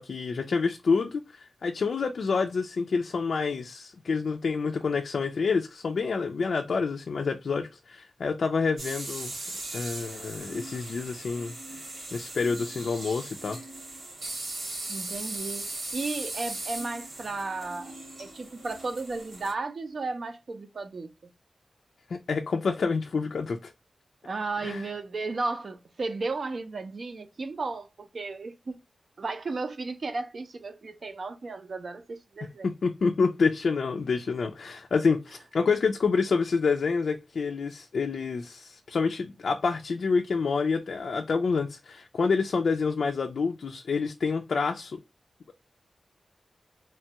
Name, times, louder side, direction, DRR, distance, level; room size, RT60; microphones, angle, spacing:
voice 1, 0.0-9.3 9.7-11.5 12.1-13.6 22.1-23.7 24.6-24.8 32.6-45.0, left 4 dB, 70° left, 0.3 m, -28 dB
sound 1, 8.8-19.5, right 2 dB, 80° right, 1.1 m, -38 dB
voice 2, 14.9-15.6 15.9-21.1 24.2-28.8 29.2-32.7, right 3 dB, 55° right, 0.5 m, -34 dB
3.0 x 2.2 x 2.8 m
wide cardioid pair, 125°, 0 cm